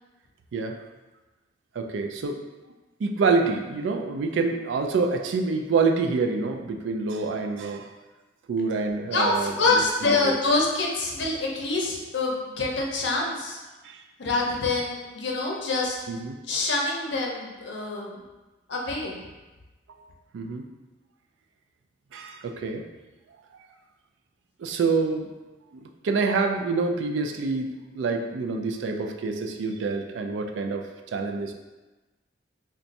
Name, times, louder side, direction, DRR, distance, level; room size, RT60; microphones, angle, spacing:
voice 1, 1.7-2.4 3.0-7.9 8.5-10.3 13.8-14.0 16.1-16.4 19.9-20.0 20.3-20.7 22.1-22.8 24.6-25.3 25.7-31.5, right 4 dB, 85° right, 4 dB, 0.3 m, -27 dB
voice 2, 9.1-13.6 14.2-16.0 16.5-18.2 18.7-19.2, left 3 dB, 75° left, -1 dB, 0.6 m, -26 dB
2.5 x 2.2 x 4.0 m, 1.2 s
head